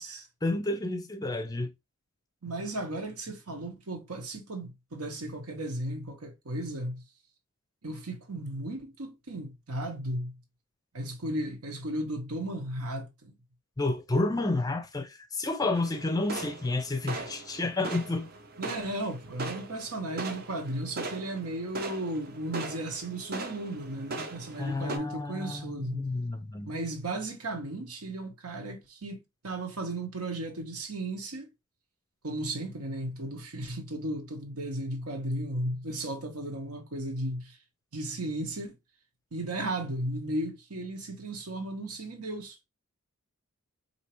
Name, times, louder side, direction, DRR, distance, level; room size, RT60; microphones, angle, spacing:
voice 1, 0.4-1.7 13.8-18.3 24.6-26.7, left 2 dB, 15° left, 0.4 m, -30 dB
voice 2, 2.4-7.0 7.8-10.3 10.9-13.3 18.6-26.0 26.6-31.5 32.2-37.6 37.9-38.8 39.3-42.7, right 1 dB, 85° right, 1.2 m, -35 dB
sound 1, 15.7-25.0, right 2 dB, 45° right, 0.7 m, -40 dB
4.4 x 2.8 x 3.0 m
head